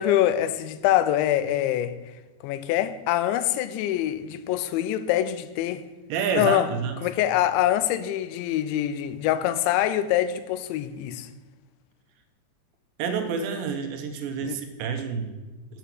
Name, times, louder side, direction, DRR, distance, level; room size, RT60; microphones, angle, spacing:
voice 1, 0.0-1.9 2.4-5.8 6.3-6.7 7.0-11.3 14.4-14.6, left 12 dB, 90° left, 2.9 m, -24 dB
voice 2, 6.1-7.0 13.0-15.4, right 6 dB, 80° right, 3.1 m, -28 dB
7.6 x 6.9 x 7.5 m
omnidirectional pair, 5.1 m